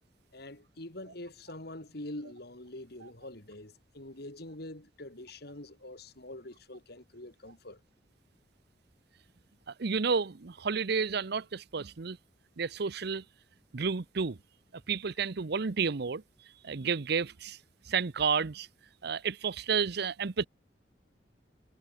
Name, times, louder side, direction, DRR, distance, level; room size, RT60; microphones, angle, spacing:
voice 1, 0.3-7.8, left 1 dB, 60° left, 3.5 m, -45 dB
voice 2, 9.7-12.2 12.6-13.2 13.7-14.4 14.9-16.2 16.6-17.6 17.9-18.7 19.0-20.5, right 5 dB, 60° right, 0.7 m, -31 dB
head